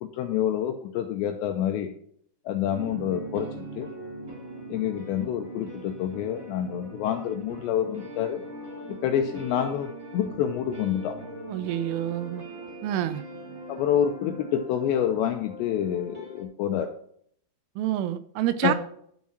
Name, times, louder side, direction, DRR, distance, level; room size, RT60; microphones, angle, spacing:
voice 1, 0.0-1.9 2.5-3.9 4.7-8.4 8.9-11.2 13.7-16.9 18.6-18.7, left 9 dB, 80° left, 6 dB, 2.6 m, -27 dB
sound 1, 2.7-16.4, right 1 dB, 35° right, 1.3 m, -41 dB
voice 2, 11.5-12.5 12.8-13.2 17.8-18.7, right 12 dB, 85° right, 13 dB, 2.9 m, -27 dB
11.0 x 5.5 x 5.9 m, 0.64 s
omnidirectional pair, 5.8 m